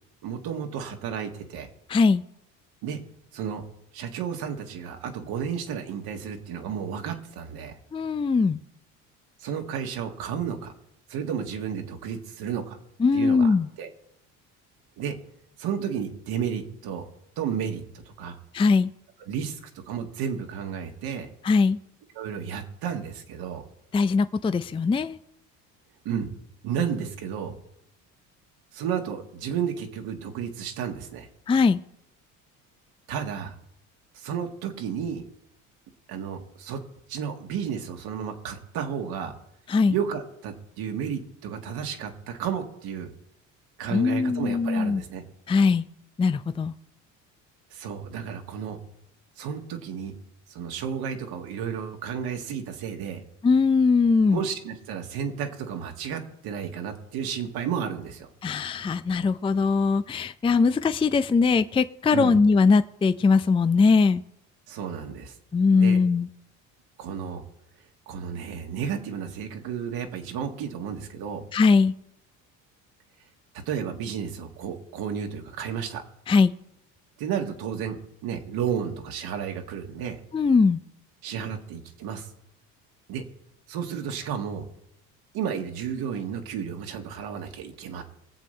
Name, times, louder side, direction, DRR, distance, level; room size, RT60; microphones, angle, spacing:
voice 1, 0.2-1.7 2.8-3.0 3.3-3.6 3.9-7.8 9.4-10.7 11.1-12.8 13.1-13.9 15.0-15.2 15.6-17.1 17.4-18.4 19.2-21.3 22.1-23.6 26.1-26.3 26.6-27.5 28.7-31.3 33.1-33.5 34.1-35.2 36.1-36.8 37.1-39.3 39.9-43.1 43.8-45.2 47.7-48.8 49.4-50.1 50.5-53.2 54.3-58.3 62.1-62.4 64.7-65.4 65.7-66.0 67.0-67.4 68.1-71.4 73.7-76.0 77.2-80.2 81.2-82.3 83.1-83.2 83.7-84.7 85.3-88.0, right 7 dB, 65° right, 4 dB, 1.9 m, -32 dB
voice 2, 1.9-2.2 7.9-8.6 13.0-13.7 18.5-18.9 21.4-21.8 23.9-25.2 31.5-31.8 39.7-39.9 43.9-45.0 45.5-45.8 46.2-46.7 53.4-54.4 58.4-64.2 65.5-66.3 71.5-71.9 76.3-76.5 80.3-80.8, left 4 dB, 15° left, 12 dB, 0.5 m, -21 dB
22.5 x 7.6 x 3.3 m, 0.79 s
hypercardioid pair, 70°, 39 cm